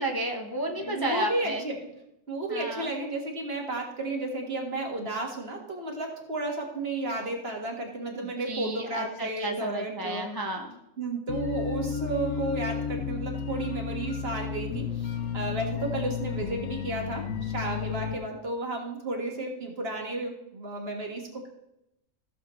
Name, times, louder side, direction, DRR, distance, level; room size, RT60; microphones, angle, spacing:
voice 1, 0.0-1.6 2.5-2.9 8.5-10.8, right 1 dB, 20° left, 1 dB, 0.7 m, -32 dB
voice 2, 0.7-1.9 2.3-10.3 11.0-21.5, right 2 dB, 50° right, 1 dB, 1.8 m, -33 dB
sound 1, 11.3-18.1, left 7 dB, 90° left, 1.2 m, -32 dB
15.0 x 7.1 x 3.1 m, 0.85 s
omnidirectional pair, 1.4 m